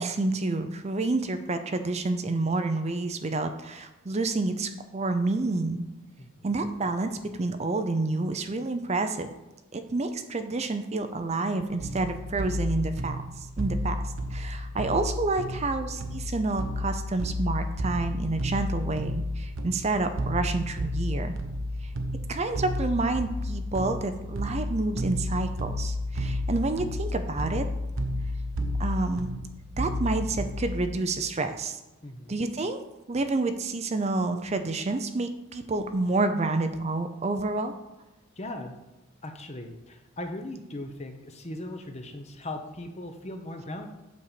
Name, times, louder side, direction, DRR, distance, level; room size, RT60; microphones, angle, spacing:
voice 1, 0.0-5.8 6.4-9.3 9.7-14.0 14.3-21.3 21.8-21.9 22.3-27.7 28.8-29.3 29.8-31.8 32.3-32.8 33.1-37.7, right 2 dB, 30° right, 8 dB, 0.5 m, -29 dB
sound 1, 11.8-30.9, left 1 dB, 75° right, 0.9 m, -32 dB
voice 2, 32.0-32.4 38.4-38.8 39.2-43.9, left 1 dB, 30° left, 5 dB, 0.9 m, -38 dB
8.4 x 4.2 x 6.8 m, 1.0 s
head